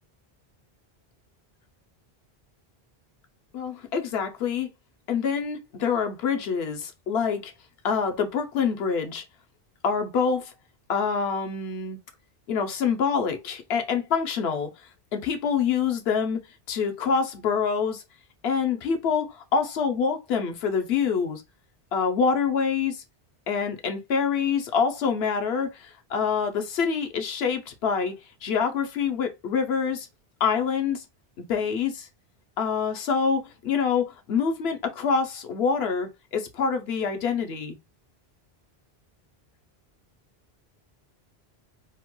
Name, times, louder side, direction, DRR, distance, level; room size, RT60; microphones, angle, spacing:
voice 1, 3.5-4.7 5.1-7.5 7.8-9.2 9.8-10.5 10.9-12.0 12.5-14.7 15.1-16.4 16.7-18.0 18.4-21.4 21.9-23.0 23.5-28.1 28.4-30.1 30.4-31.0 31.4-32.1 32.6-37.8, left 6 dB, 80° left, 0.9 m, -26 dB
2.9 x 2.2 x 2.9 m
omnidirectional pair, 1.1 m